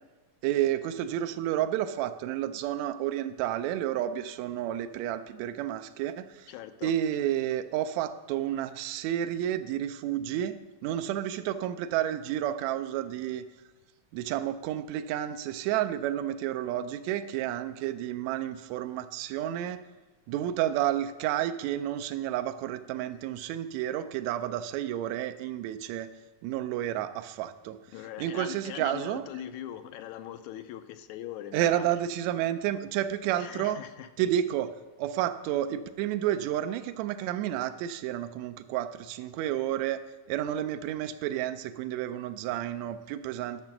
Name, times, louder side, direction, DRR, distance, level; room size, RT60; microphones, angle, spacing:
voice 1, 0.4-6.5 6.8-13.4 14.1-19.8 20.3-26.1 26.4-27.8 28.2-29.2 31.5-33.8 34.2-40.0 40.3-43.6, right 11 dB, 80° right, 10 dB, 1.8 m, -31 dB
voice 2, 6.5-6.9 27.9-31.9 33.4-34.1, left 11 dB, 80° left, 9 dB, 1.9 m, -41 dB
10.5 x 6.6 x 5.8 m, 1.2 s
omnidirectional pair, 3.4 m